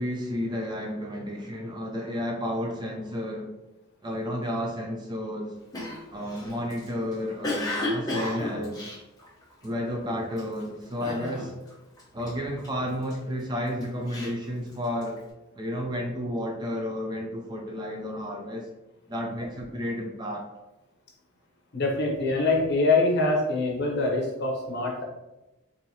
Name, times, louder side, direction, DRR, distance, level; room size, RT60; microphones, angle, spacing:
voice 1, 0.0-3.5 4.0-5.5 6.1-8.8 9.6-11.5 12.1-15.2 15.6-18.7 19.1-20.5, equal, 20° right, 1 dB, 0.4 m, -32 dB
Cough, 5.7-9.8 10.3-10.6 11.0-11.7 12.0-13.1 13.7-15.2, left 2 dB, 15° left, 0.8 m, -33 dB
voice 2, 21.7-25.0, left 2 dB, 50° left, -1 dB, 0.9 m, -24 dB
4.5 x 2.7 x 2.8 m, 1.0 s
head